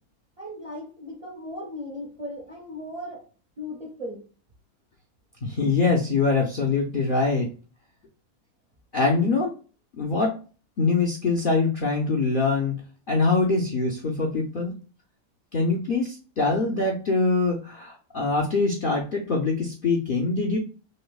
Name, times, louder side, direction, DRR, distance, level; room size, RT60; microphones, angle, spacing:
voice 1, 0.4-3.3 3.6-4.3 9.0-9.3, left 1 dB, 35° right, -1 dB, 0.6 m, -37 dB
voice 2, 5.4-7.5 8.9-9.5 9.9-10.4 10.8-14.8 15.5-20.6, left 3 dB, 55° left, 0 dB, 0.6 m, -24 dB
5.2 x 2.1 x 2.3 m, 0.37 s
omnidirectional pair, 1.6 m